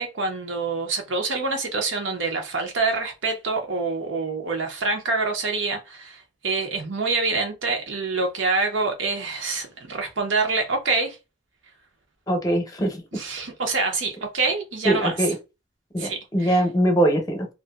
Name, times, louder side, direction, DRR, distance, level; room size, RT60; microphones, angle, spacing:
voice 1, 0.0-11.2 13.1-15.2 16.0-16.6, right 3 dB, 90° right, 0.8 m, -26 dB
voice 2, 12.3-13.0 14.8-15.3 15.9-17.5, right 1 dB, 20° left, 0.7 m, -22 dB
2.5 x 2.5 x 2.3 m
head